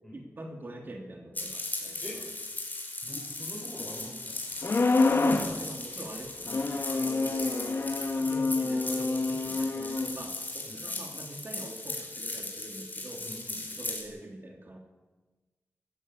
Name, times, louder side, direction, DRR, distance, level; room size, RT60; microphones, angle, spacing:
voice 1, 0.1-2.3 5.0-6.5 6.9-7.8 8.1-13.3 13.8-14.8, right 1 dB, 45° right, 2 dB, 3.0 m, -44 dB
sound 1, 1.3-14.0, left 2 dB, 35° left, 5.3 m, -38 dB
voice 2, 3.0-4.4 10.7-10.8 13.2-13.7, equal, ahead, -3 dB, 5.0 m, -44 dB
sound 2, 4.6-5.5 6.5-10.1, left 3 dB, 55° left, 2.1 m, -27 dB
21.5 x 15.5 x 8.9 m, 1.2 s
wide cardioid pair, 120°, 5 cm